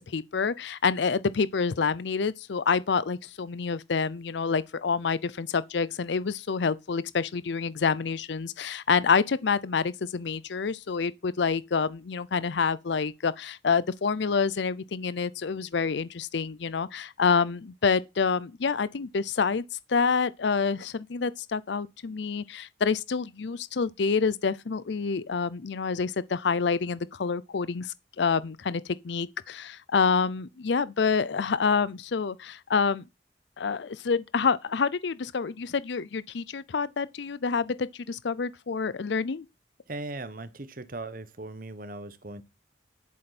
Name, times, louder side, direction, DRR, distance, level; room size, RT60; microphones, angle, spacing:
voice 1, 0.0-19.6 19.9-33.0 33.6-39.5, left 5 dB, 70° left, 0.5 m, -27 dB
voice 2, 39.9-42.4, right 2 dB, 45° right, 1.1 m, -38 dB
11.0 x 8.7 x 4.2 m
head